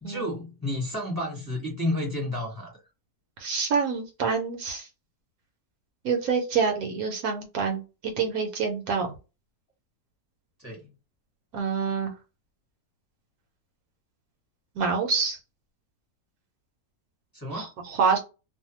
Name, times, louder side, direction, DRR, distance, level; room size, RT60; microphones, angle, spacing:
voice 1, 0.0-2.7 10.6-10.9 17.3-17.7, left 1 dB, 15° left, 1.1 m, -31 dB
voice 2, 3.4-4.9 6.0-9.1 11.5-12.1 14.8-15.4 17.5-18.2, right 5 dB, 75° right, 1.1 m, -27 dB
2.7 x 2.2 x 2.9 m
omnidirectional pair, 1.6 m